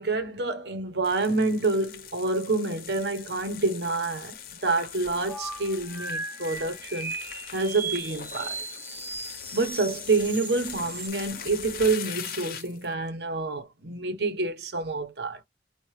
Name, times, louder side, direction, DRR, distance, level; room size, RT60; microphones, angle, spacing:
voice 1, 0.0-4.4 4.6-7.1 7.5-8.6 9.5-15.4, right 3 dB, 70° right, 1.0 m, -27 dB
sound 1, 1.0-12.9, left 8 dB, 55° left, 0.7 m, -41 dB
sound 2, 5.3-11.1, right 4 dB, 10° right, 0.3 m, -37 dB
4.6 x 2.5 x 3.1 m
head